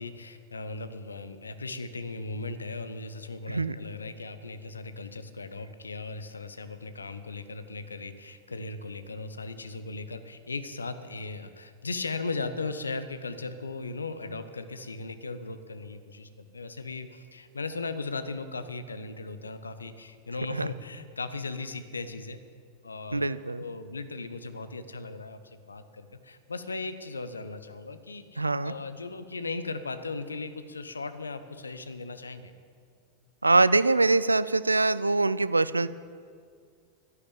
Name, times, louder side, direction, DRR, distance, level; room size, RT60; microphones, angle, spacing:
voice 1, 0.0-22.4 22.8-23.3 23.6-32.5, left 3 dB, 75° left, 11 dB, 1.0 m, -37 dB
voice 2, 23.1-23.6 28.4-28.7 33.4-35.9, right 3 dB, 80° right, 16 dB, 0.4 m, -23 dB
12.0 x 11.0 x 9.1 m, 2.1 s
figure-of-eight pair, 90°, 0 cm